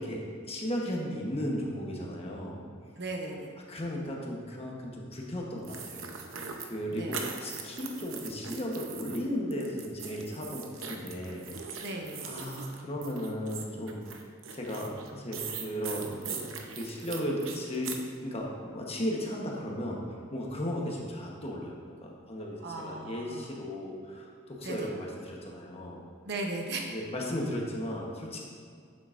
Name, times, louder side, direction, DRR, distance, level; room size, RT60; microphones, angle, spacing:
voice 1, 0.0-2.6 3.7-6.1 6.3-11.9 12.2-14.0 14.5-16.5 16.8-18.0 18.2-21.7 22.0-26.0 26.9-28.4, equal, 30° left, -1 dB, 1.1 m, -35 dB
voice 2, 3.0-3.5 6.9-7.2 11.8-12.3 22.6-23.5 24.6-24.9 26.2-26.9, right 2 dB, 60° right, 1 dB, 1.0 m, -37 dB
sound 1, 5.6-9.2 9.5-18.1, right 6 dB, 85° right, 0.8 m, -40 dB
8.7 x 7.7 x 2.6 m, 2.2 s
head